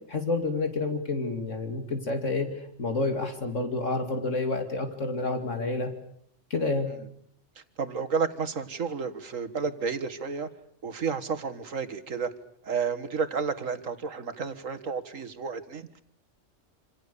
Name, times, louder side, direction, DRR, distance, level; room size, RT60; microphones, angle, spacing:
voice 1, 0.1-2.5 2.8-5.9 6.5-6.9, left 3 dB, 70° left, 6 dB, 2.9 m, -29 dB
voice 2, 7.8-10.5 10.8-12.3 12.6-16.0, right 5 dB, 90° right, 9 dB, 2.1 m, -31 dB
27.5 x 27.5 x 6.9 m, 0.67 s
omnidirectional pair, 1.3 m